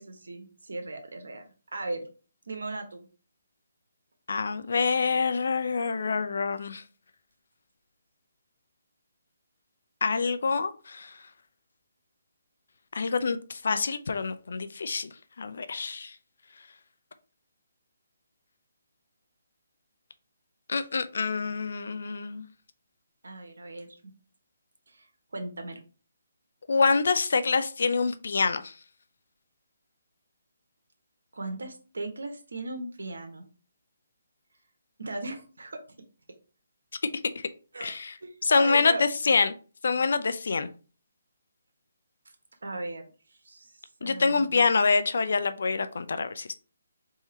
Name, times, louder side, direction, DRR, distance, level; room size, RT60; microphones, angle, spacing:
voice 1, 0.0-1.4 1.7-2.1 2.5-3.1 23.2-24.1 24.9-25.1 25.3-25.8 31.3-33.4 35.0-35.8 37.7-39.0 42.6-44.6, right 2 dB, 85° right, 1.2 m, -38 dB
voice 2, 4.3-6.8 10.0-11.1 12.9-15.1 15.4-16.1 20.7-22.5 26.7-28.7 37.8-38.1 38.4-39.5 39.8-40.7 44.0-46.5, left 4 dB, 70° left, 0.5 m, -26 dB
3.6 x 2.9 x 4.3 m
hypercardioid pair, 155°, 0 cm